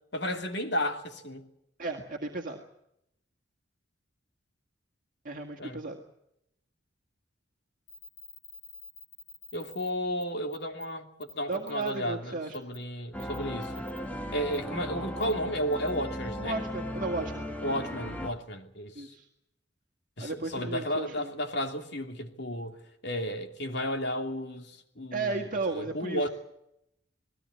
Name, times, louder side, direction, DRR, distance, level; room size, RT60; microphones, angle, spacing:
voice 1, 0.1-1.5 5.6-5.8 9.5-13.7 14.3-16.6 17.6-19.1 20.2-26.3, equal, 60° left, 2.9 m, -33 dB
voice 2, 1.8-2.6 5.2-6.0 11.5-12.6 16.4-17.5 19.0-19.3 20.2-21.3 25.1-26.2, right 3 dB, 45° right, 2.0 m, -34 dB
sound 1, 7.9-9.9 10.2-10.3 10.5-10.9 11.2-11.9 12.5-12.8 13.2-14.0 14.5-14.6 15.2-15.3 15.7-15.9, left 3 dB, 80° left, 6.0 m, -48 dB
sound 2, 13.1-18.3, equal, 10° left, 1.8 m, -37 dB
20.0 x 17.0 x 9.6 m
head